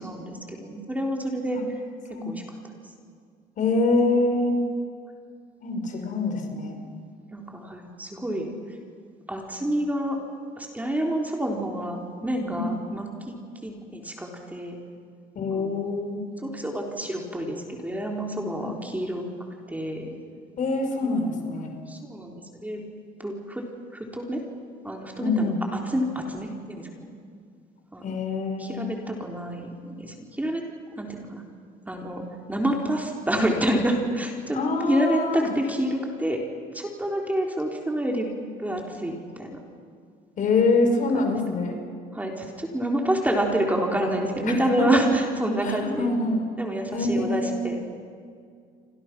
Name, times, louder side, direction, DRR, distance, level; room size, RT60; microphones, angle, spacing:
voice 1, 0.0-1.6 2.2-2.4 7.3-8.5 9.3-10.2 10.6-13.4 13.6-14.8 15.5-15.9 16.4-19.3 19.7-20.2 21.0-21.3 21.9-22.8 23.2-23.7 23.9-24.4 24.8-25.5 25.9-27.1 27.9-28.2 28.6-30.6 31.0-31.4 31.9-34.6 34.9-36.4 36.7-38.3 38.6-39.6 41.1-41.2 42.1-46.1 46.6-47.8, right 1 dB, 10° right, 0 dB, 3.8 m, -28 dB
voice 2, 2.1-2.4 3.6-4.6 5.6-6.8 12.5-12.7 15.4-16.2 18.6-18.8 20.6-21.7 25.2-25.6 28.0-28.9 34.5-35.5 40.4-41.8 44.8-45.0 45.6-46.4 46.9-47.6, left 3 dB, 50° left, 4 dB, 5.5 m, -25 dB
29.5 x 25.5 x 6.1 m, 2.2 s
cardioid pair, 110°, 17 cm